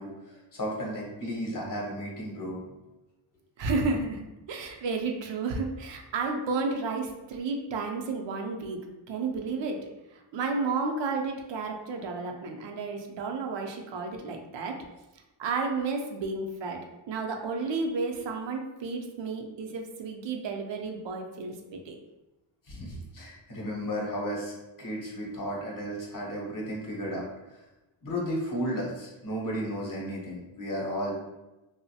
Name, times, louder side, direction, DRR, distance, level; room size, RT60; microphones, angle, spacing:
voice 1, 0.0-2.6 22.7-24.5 24.8-27.3 28.0-31.1, equal, 45° left, -3 dB, 0.8 m, -34 dB
voice 2, 3.6-8.8 9.1-9.8 10.1-14.8 15.4-16.8 17.1-21.5 21.9-22.0, right 4 dB, 70° right, 3 dB, 0.5 m, -32 dB
3.0 x 2.0 x 2.7 m, 1.0 s
wide cardioid pair, 145°, 46 cm